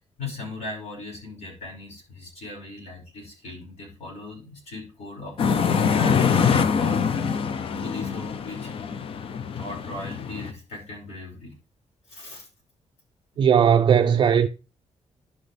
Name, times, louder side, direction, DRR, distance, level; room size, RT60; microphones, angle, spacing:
voice 1, 0.2-6.2 6.8-7.1 7.7-8.7 9.6-11.5 12.1-12.5, left 2 dB, 85° left, 5.9 m, -38 dB
sound 1, 5.4-10.5, left 6 dB, 55° left, 0.6 m, -24 dB
voice 2, 13.4-14.5, right 8 dB, 45° right, 0.4 m, -18 dB
11.0 x 6.3 x 3.4 m
wide cardioid pair, 160°, 11 cm